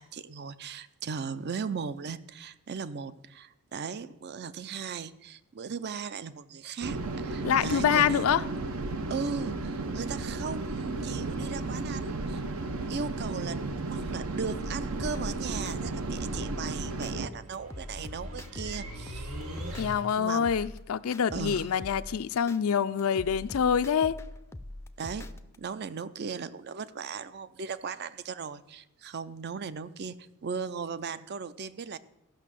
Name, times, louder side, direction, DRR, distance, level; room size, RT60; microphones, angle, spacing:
voice 1, 0.0-8.3 9.1-12.4 12.9-19.3 20.2-20.6 21.3-21.8 25.0-32.0, right 5 dB, 50° right, 0.5 m, -37 dB
sound 1, 6.8-17.3, right 3 dB, 70° right, 0.8 m, -34 dB
voice 2, 7.4-8.4 19.8-24.2, left 7 dB, 70° left, 0.4 m, -26 dB
sound 2, 15.0-17.1 17.5-20.1 20.4-22.6 23.0-25.6, left 1 dB, 10° left, 0.4 m, -43 dB
sound 3, 16.9-20.4, equal, 90° right, 1.7 m, -44 dB
14.0 x 6.1 x 7.5 m
head